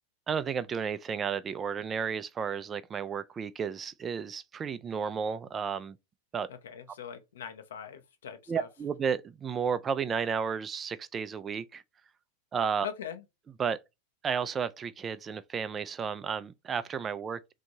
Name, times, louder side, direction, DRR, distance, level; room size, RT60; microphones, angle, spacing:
voice 1, 0.3-5.9 6.3-6.5 8.5-11.8 12.5-12.9 13.6-13.8 14.2-17.4, right 6 dB, 20° right, 0.3 m, -32 dB
voice 2, 6.5-8.7 12.8-13.2, left 8 dB, 60° left, 0.7 m, -41 dB
3.4 x 2.7 x 3.9 m
figure-of-eight pair, 90°, 0 cm